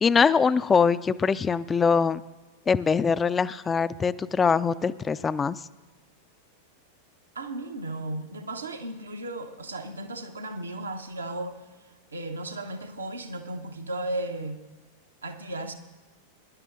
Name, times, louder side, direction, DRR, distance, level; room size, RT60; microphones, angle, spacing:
voice 1, 0.0-2.2 2.7-5.6, left 5 dB, 20° left, 16 dB, 0.3 m, -23 dB
voice 2, 7.3-11.6 12.1-14.6 15.2-15.7, right 2 dB, 75° right, 6 dB, 0.9 m, -35 dB
22.5 x 11.0 x 2.6 m, 1.2 s
figure-of-eight pair, 90°, 0 cm